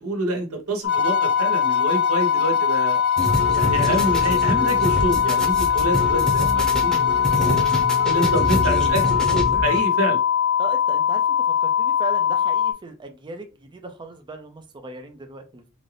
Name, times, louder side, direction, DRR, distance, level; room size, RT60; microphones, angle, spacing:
voice 1, 0.0-3.0 3.5-7.6 8.0-10.2, right 1 dB, 85° right, 3 dB, 1.2 m, -27 dB
sound 1, 0.8-12.7, left 9 dB, 65° left, 0.9 m, -21 dB
Bowed string instrument, 0.9-9.2, right 3 dB, 85° left, 1.3 m, -34 dB
sound 2, 3.2-9.8, left 1 dB, 5° left, 0.8 m, -26 dB
voice 2, 10.6-15.6, right 2 dB, 20° right, 5 dB, 0.5 m, -38 dB
3.9 x 2.5 x 3.3 m, 0.33 s
head